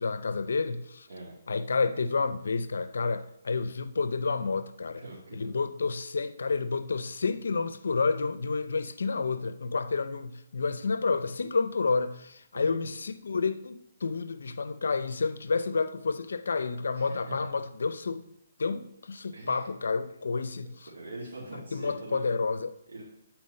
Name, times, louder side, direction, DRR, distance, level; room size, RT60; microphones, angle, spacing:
voice 1, 0.0-1.1 1.5-5.0 5.3-18.3 18.6-20.9 21.5-22.8, left 4 dB, 80° left, 0.5 m, -30 dB
voice 2, 5.0-5.5 12.5-12.9 16.9-17.5 19.3-19.7 20.9-22.2 22.9-23.1, right 2 dB, 70° right, 2.1 m, -42 dB
9.4 x 4.4 x 5.2 m
hypercardioid pair, 155°, 0 cm